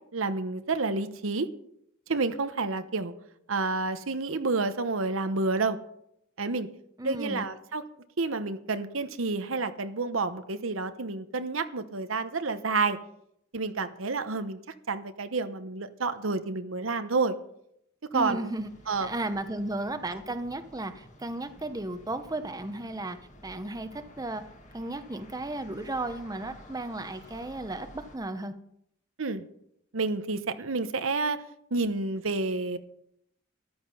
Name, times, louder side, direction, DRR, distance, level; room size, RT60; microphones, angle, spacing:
voice 1, 0.1-1.5 2.1-3.1 3.5-5.8 6.4-6.7 7.0-7.8 8.2-13.0 13.5-14.6 14.9-17.4 18.1-18.5 18.9-19.1 29.2-29.4 29.9-31.4 31.7-32.8, right 3 dB, 90° right, 10 dB, 1.0 m, -29 dB
voice 2, 7.0-7.4 18.1-18.7 19.0-23.2 23.4-24.4 24.7-28.5, right 2 dB, 20° right, 9 dB, 0.8 m, -34 dB
sound 1, 18.6-28.2, left 1 dB, 40° left, 2.0 m, -52 dB
13.5 x 11.5 x 5.6 m, 0.74 s
head